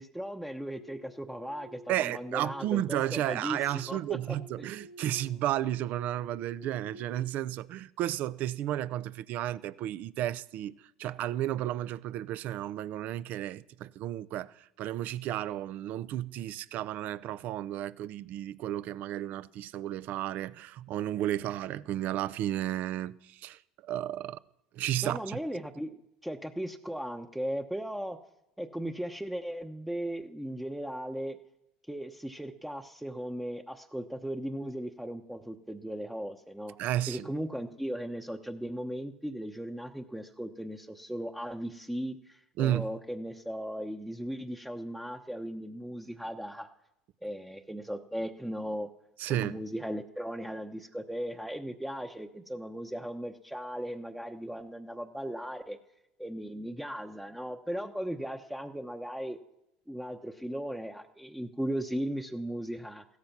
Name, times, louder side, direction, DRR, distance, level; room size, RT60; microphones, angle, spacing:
voice 1, 0.0-3.6 3.9-4.7 25.0-28.2 28.6-31.4 31.9-36.7 37.1-46.7 47.2-48.9 49.3-55.8 56.2-59.4 59.9-63.0, equal, 5° right, 1.0 m, -37 dB
sound 1, 0.8-7.1, equal, 65° left, 1.7 m, -52 dB
voice 2, 1.9-24.4 24.7-25.4 36.8-37.3 42.6-42.9 49.2-49.6, right 13 dB, 55° right, 0.6 m, -33 dB
16.0 x 13.5 x 6.0 m
hypercardioid pair, 85°, 3 cm